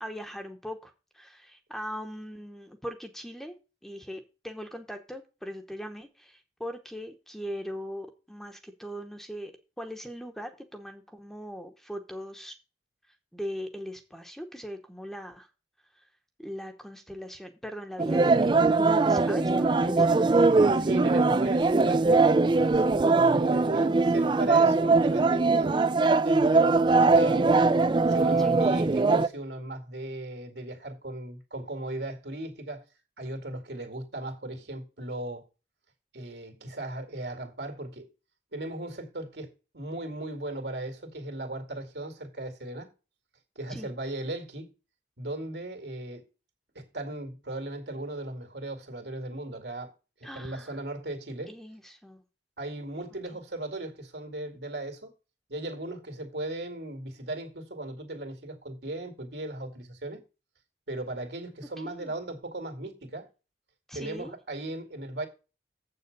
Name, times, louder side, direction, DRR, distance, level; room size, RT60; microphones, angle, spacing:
voice 1, 0.0-12.6 13.3-15.5 15.9-16.0 16.4-18.6 19.1-20.1 28.4-28.6 43.7-43.9 50.2-50.8 51.5-52.2 61.8-62.1 63.9-64.3, equal, ahead, 0.9 m, -40 dB
sound 1, 18.0-29.3, right 3 dB, 25° right, 0.4 m, -21 dB
voice 2, 20.4-22.3 22.6-27.7 28.1-32.8 33.2-35.5 36.1-38.1 38.5-42.9 43.6-44.7 45.2-46.2 46.7-49.9 50.2-51.5 52.6-55.1 55.5-60.2 60.9-63.3 63.9-65.3, right 2 dB, 75° right, 2.3 m, -37 dB
7.7 x 6.8 x 5.3 m
head